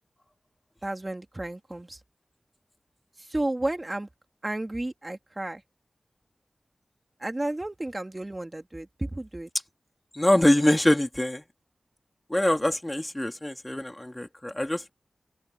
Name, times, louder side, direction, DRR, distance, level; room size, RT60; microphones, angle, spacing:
voice 1, 0.8-2.0 3.2-4.1 4.4-5.6 7.2-9.5, right 1 dB, 25° right, 2.3 m, -32 dB
voice 2, 10.1-11.4 12.3-14.9, left 1 dB, 15° left, 2.4 m, -24 dB
open air
wide cardioid pair, 80°, 0 cm